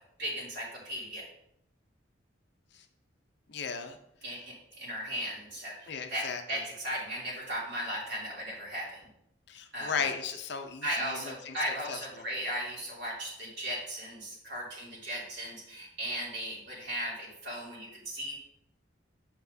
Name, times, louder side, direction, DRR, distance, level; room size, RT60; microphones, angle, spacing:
voice 1, 0.2-1.3 4.2-9.0 9.7-9.9 10.8-18.4, equal, 60° right, -6 dB, 2.9 m, -36 dB
voice 2, 3.5-4.0 5.9-6.4 9.5-12.2, left 6 dB, 60° left, 6 dB, 0.6 m, -36 dB
7.0 x 6.7 x 2.7 m, 0.77 s
head